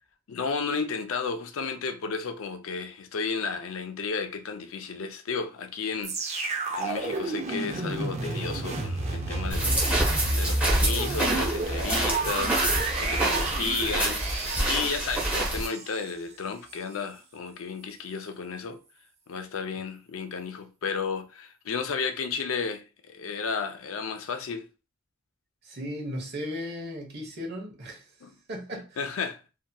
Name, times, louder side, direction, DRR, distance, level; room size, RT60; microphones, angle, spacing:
voice 1, 0.3-6.4 6.8-10.0 10.3-18.8 19.3-24.7 28.2-28.3 29.0-29.4, left 5 dB, 80° left, 0.5 m, -33 dB
sound 1, 6.0-16.1 16.7-16.8, right 2 dB, 35° right, 0.6 m, -30 dB
sound 2, 9.5-15.7, right 1 dB, 5° right, 0.9 m, -27 dB
voice 2, 25.6-28.1 28.5-29.0, equal, 55° right, 1.0 m, -36 dB
2.9 x 2.7 x 2.2 m
head